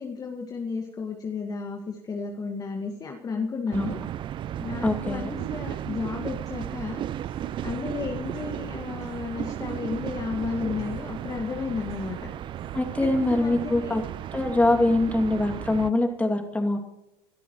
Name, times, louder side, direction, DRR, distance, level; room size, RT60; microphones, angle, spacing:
voice 1, 0.0-4.0 4.6-7.0 7.6-12.3 13.0-13.9, left 5 dB, 30° left, 2 dB, 1.9 m, -33 dB
sound 1, 3.7-15.9, right 11 dB, 35° right, 0.5 m, -35 dB
voice 2, 4.8-5.4 12.7-14.0 14.3-16.8, left 2 dB, 10° left, 2 dB, 2.7 m, -24 dB
sound 2, 7.2-14.3, right 4 dB, 55° right, 4.6 m, -51 dB
27.0 x 13.0 x 3.2 m, 0.91 s
hypercardioid pair, 80°, 14 cm